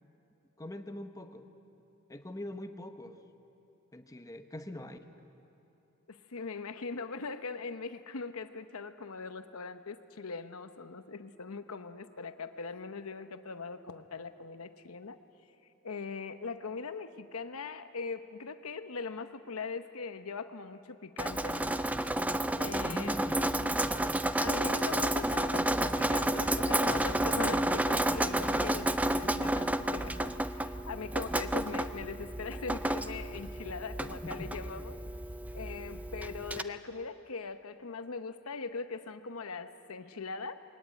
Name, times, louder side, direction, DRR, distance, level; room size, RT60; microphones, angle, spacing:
voice 1, 0.6-1.5 2.1-3.2 3.9-5.1 22.8-23.4 34.0-34.5, left 1 dB, 15° left, 7 dB, 1.0 m, -42 dB
voice 2, 6.1-15.2 15.8-21.8 22.6-23.7 24.4-35.0 35.5-40.5, left 4 dB, 70° left, 10 dB, 0.9 m, -41 dB
Drip, 21.2-36.6, right 1 dB, 5° right, 0.4 m, -31 dB
21.0 x 18.0 x 9.0 m, 2.9 s
head